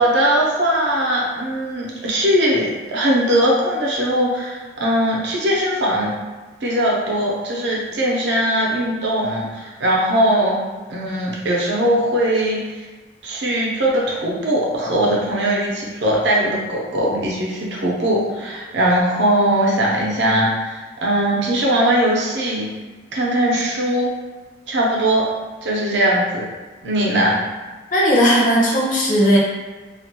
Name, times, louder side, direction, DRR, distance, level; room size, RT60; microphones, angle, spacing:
voice 1, 0.0-6.1 6.6-10.6 10.9-12.6 13.2-22.7 23.1-24.1 24.7-25.3 25.6-26.4 26.8-27.4, right 1 dB, 75° right, -3 dB, 0.6 m, -20 dB
voice 2, 27.9-29.4, equal, 50° left, -4 dB, 0.6 m, -16 dB
2.4 x 2.1 x 2.8 m, 1.3 s
head